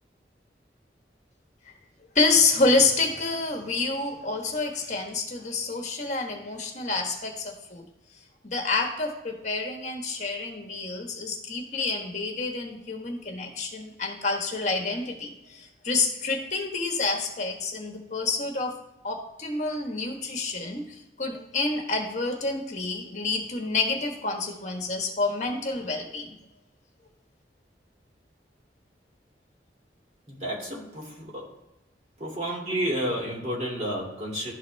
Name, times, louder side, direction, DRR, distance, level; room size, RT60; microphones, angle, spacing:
voice 1, 2.1-7.8 8.4-26.4, left 3 dB, 45° left, 3 dB, 1.3 m, -28 dB
voice 2, 30.3-31.5 32.2-34.5, equal, 40° right, -3 dB, 2.4 m, -31 dB
12.0 x 4.1 x 3.2 m, 0.95 s
head